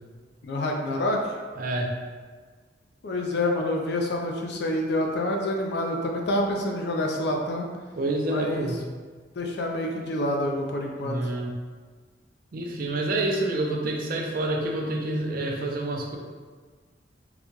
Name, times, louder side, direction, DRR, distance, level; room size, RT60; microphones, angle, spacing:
voice 1, 0.4-1.3 3.0-7.7 8.3-8.7 9.4-11.2, left 1 dB, 65° left, 1 dB, 0.5 m, -27 dB
voice 2, 1.6-1.9 7.9-8.8 11.0-11.5 12.5-16.2, right 1 dB, 55° right, 1 dB, 0.5 m, -28 dB
3.8 x 2.2 x 3.0 m, 1.5 s
head